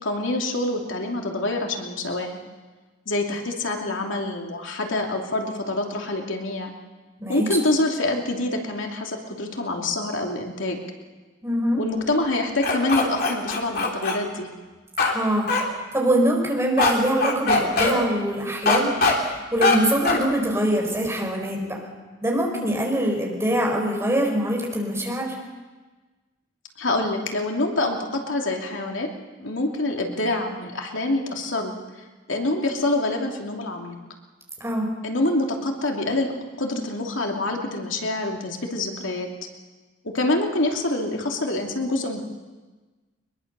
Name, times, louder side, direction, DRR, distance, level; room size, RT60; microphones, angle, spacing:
voice 1, 0.0-2.4 3.1-6.7 7.3-10.8 11.8-14.5 22.5-22.8 26.8-29.1 29.4-31.7 32.3-34.0 35.0-36.3 36.6-39.3 40.0-42.2, left 2 dB, 80° left, 1 dB, 2.8 m, -26 dB
voice 2, 11.4-11.8 15.1-15.5 15.9-21.8 22.2-25.3 34.6-34.9, right 1 dB, 15° right, 0 dB, 4.8 m, -24 dB
sound 1, 12.6-14.2 15.0-15.1 15.5-15.6 16.8-16.9 17.2-17.9 18.7-19.1 19.6-19.8 20.0-20.2, left 3 dB, 50° left, 3.2 m, -20 dB
22.5 x 22.0 x 6.8 m, 1.3 s
head